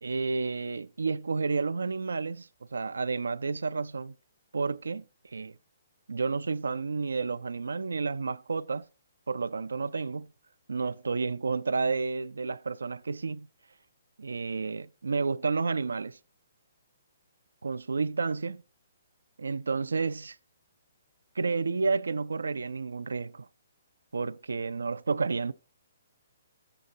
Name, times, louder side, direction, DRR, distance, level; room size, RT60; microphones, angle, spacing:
voice 1, 0.0-4.1 4.5-5.6 6.1-8.9 9.3-10.3 10.7-13.5 14.2-16.2 17.6-18.6 19.4-20.4 21.4-23.5 24.1-25.5, right 4 dB, 85° right, 0.4 m, -31 dB
13.5 x 7.6 x 2.7 m
hypercardioid pair, 140°, 0 cm